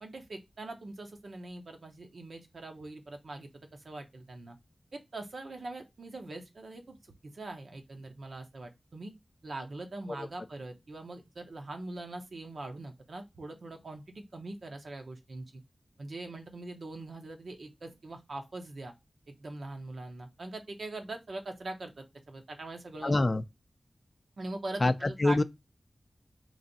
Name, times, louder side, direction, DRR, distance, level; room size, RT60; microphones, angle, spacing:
voice 1, 0.0-4.6 4.9-7.0 7.2-9.1 9.4-15.6 16.0-18.9 19.3-23.1 24.4-25.4, right 2 dB, 75° right, 0.9 m, -42 dB
voice 2, 23.0-23.4 24.8-25.4, left 2 dB, 40° left, 0.4 m, -26 dB
3.2 x 2.6 x 4.0 m
wide cardioid pair, 80°, 0 cm